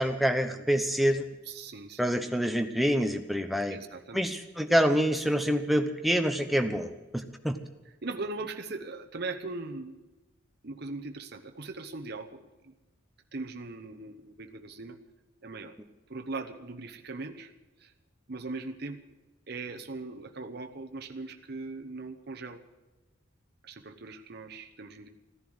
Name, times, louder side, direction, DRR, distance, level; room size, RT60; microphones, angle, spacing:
voice 1, 0.0-1.3 2.0-3.8 4.1-7.6, equal, ahead, 6 dB, 0.9 m, -26 dB
voice 2, 1.5-2.0 3.7-4.3 8.0-10.0 10.6-12.7 13.3-15.0 15.4-15.7 16.1-17.5 17.8-17.9 18.3-19.0 19.5-22.6 23.6-25.1, right 3 dB, 55° right, 5 dB, 1.0 m, -39 dB
15.5 x 11.0 x 7.9 m, 1.1 s
head